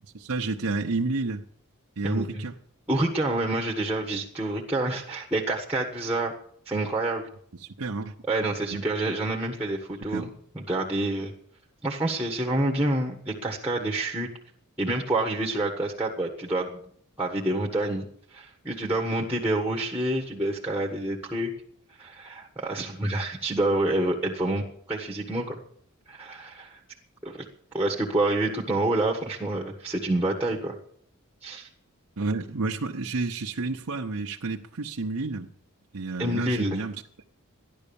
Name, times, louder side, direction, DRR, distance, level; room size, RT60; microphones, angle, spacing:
voice 1, 0.0-1.4 2.0-2.5 7.6-8.1 8.7-8.8 10.1-10.3 32.2-35.5 35.9-36.9, right 3 dB, 75° right, 1 dB, 0.9 m, -30 dB
voice 2, 2.0-2.5 2.9-6.3 6.6-7.3 8.3-10.3 10.5-11.3 11.8-14.3 14.8-16.8 17.2-18.0 18.3-21.5 22.0-25.6 26.1-26.8 27.2-27.5 27.7-30.8 31.4-31.7 36.2-36.8, right 2 dB, 5° right, 0 dB, 1.4 m, -28 dB
14.0 x 11.0 x 7.0 m, 0.62 s
head